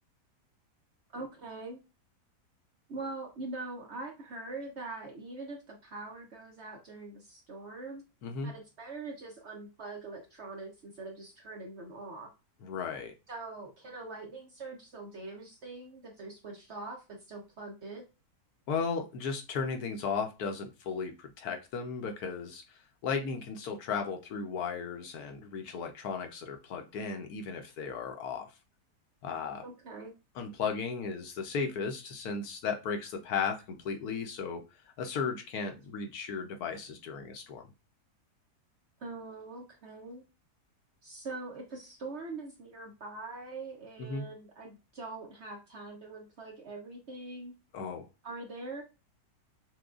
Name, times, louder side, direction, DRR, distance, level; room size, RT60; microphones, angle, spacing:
voice 1, 1.1-1.8 2.9-8.0 8.4-12.3 13.3-18.0 29.6-30.1 39.0-40.2 41.0-47.5 48.2-48.8, right 3 dB, 55° right, 1 dB, 0.8 m, -43 dB
voice 2, 8.2-8.5 12.6-13.1 18.7-22.6 23.0-28.5 29.2-29.6 30.4-34.6 35.0-37.7 44.0-44.2 47.7-48.1, left 5 dB, 70° left, 5 dB, 1.1 m, -35 dB
6.0 x 2.2 x 2.4 m, 0.29 s
omnidirectional pair, 1.8 m